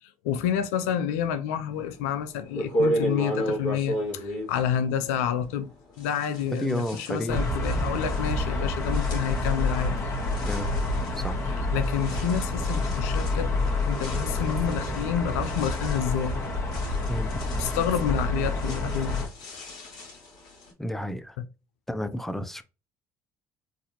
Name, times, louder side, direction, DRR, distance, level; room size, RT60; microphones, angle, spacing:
voice 1, 0.0-5.7 6.0-10.2 11.5-13.5 13.9-16.4 17.6-19.2 19.5-19.7 21.4-21.5, left 9 dB, 85° left, 0.4 m, -29 dB
sound 1, 2.0-2.1 2.5-5.6 6.0-20.7, equal, 65° left, 2.1 m, -35 dB
voice 2, 6.5-7.5 10.4-10.9 11.2-11.4 13.6-13.7 17.1-17.3 20.8-21.4 21.9-22.6, equal, 5° left, 0.5 m, -31 dB
sound 2, 7.3-19.3, left 2 dB, 35° left, 1.7 m, -28 dB
4.0 x 2.5 x 2.9 m
hypercardioid pair, 65°, 8 cm